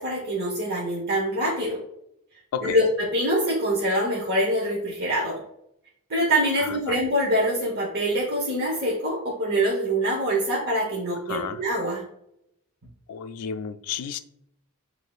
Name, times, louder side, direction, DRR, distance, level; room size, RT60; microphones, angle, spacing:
voice 1, 0.0-1.8 2.6-5.4 6.1-12.0, equal, 45° right, -4 dB, 1.0 m, -24 dB
voice 2, 11.3-11.6 13.1-14.2, left 7 dB, 85° left, 10 dB, 0.4 m, -31 dB
7.7 x 2.7 x 2.4 m, 0.77 s
head